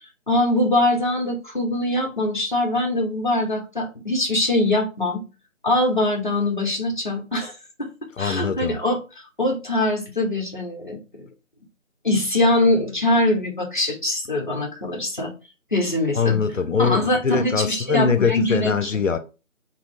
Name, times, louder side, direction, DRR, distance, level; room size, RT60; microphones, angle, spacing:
voice 1, 0.3-5.2 5.6-7.9 8.2-9.0 9.4-11.3 12.0-15.3 15.7-16.4 16.8-18.9, left 1 dB, 40° left, 0.7 m, -22 dB
voice 2, 8.2-8.8 16.1-19.2, left 6 dB, 75° left, 0.5 m, -22 dB
3.0 x 2.0 x 3.4 m
figure-of-eight pair, 165°, 39 cm